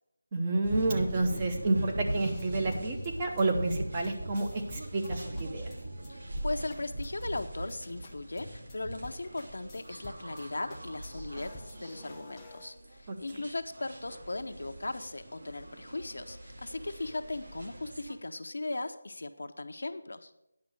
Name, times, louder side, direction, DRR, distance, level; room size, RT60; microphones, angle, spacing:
voice 1, 0.3-5.7 13.1-13.2, right 2 dB, 20° right, 3 dB, 0.9 m, -30 dB
sound 1, 0.6-18.2, right 1 dB, 55° right, 2.0 m, -40 dB
sound 2, 2.0-5.1 5.4-5.8 6.0-6.1 6.4-7.8 8.0-8.4 8.7-8.8 9.0-10.4 10.7-12.7, left 1 dB, 10° left, 0.9 m, -50 dB
voice 2, 6.1-20.3, left 2 dB, 70° left, 7 dB, 0.8 m, -38 dB
9.4 x 6.0 x 6.5 m, 0.82 s
figure-of-eight pair, 170°, 0 cm